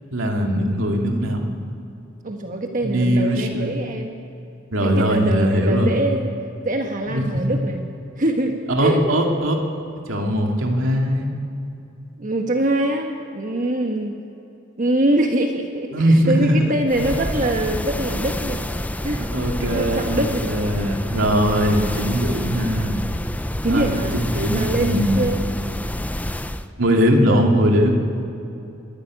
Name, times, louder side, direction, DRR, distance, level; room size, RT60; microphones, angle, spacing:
voice 1, 0.1-1.4 2.8-3.7 4.7-6.0 7.1-7.4 8.7-9.6 10.1-11.3 15.9-16.7 19.2-23.0 23.7-23.9 24.2-25.2 26.8-27.9, equal, 75° right, 1 dB, 2.7 m, -20 dB
voice 2, 2.2-4.2 4.8-6.3 6.6-7.8 8.2-9.0 12.2-14.2 14.8-18.6 19.0-19.3 19.7-20.5 23.6-24.2 24.5-25.4 27.2-27.5, right 1 dB, 40° right, 3 dB, 1.4 m, -23 dB
sound 1, 16.9-26.7, left 1 dB, 10° left, 0.5 m, -28 dB
25.0 x 11.5 x 9.8 m, 2.8 s
head